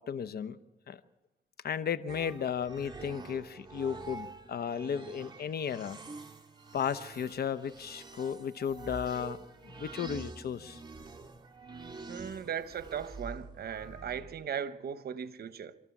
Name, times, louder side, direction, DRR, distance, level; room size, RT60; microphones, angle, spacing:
voice 1, 0.1-0.6 0.9-1.0 1.6-6.0 6.7-10.8, left 8 dB, 75° left, 1.0 m, -34 dB
sound 1, 2.1-14.4, right 3 dB, 30° right, 2.2 m, -47 dB
voice 2, 12.1-15.8, right 8 dB, 75° right, 1.1 m, -38 dB
26.5 x 13.5 x 7.3 m
cardioid pair, 75°, 16 cm